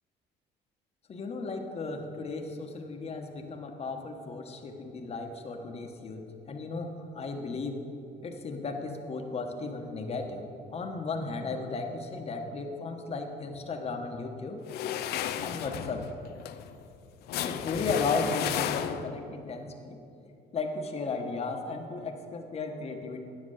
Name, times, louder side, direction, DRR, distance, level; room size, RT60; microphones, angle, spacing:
voice 1, 1.1-7.8 8.2-14.6 15.4-16.1 17.4-20.0 20.5-23.2, left 3 dB, 35° left, 4 dB, 1.2 m, -35 dB
sound 1, 14.7-19.3, left 10 dB, 75° left, 0.5 m, -33 dB
10.0 x 7.7 x 6.4 m, 2.6 s
cardioid pair, 110°, 17 cm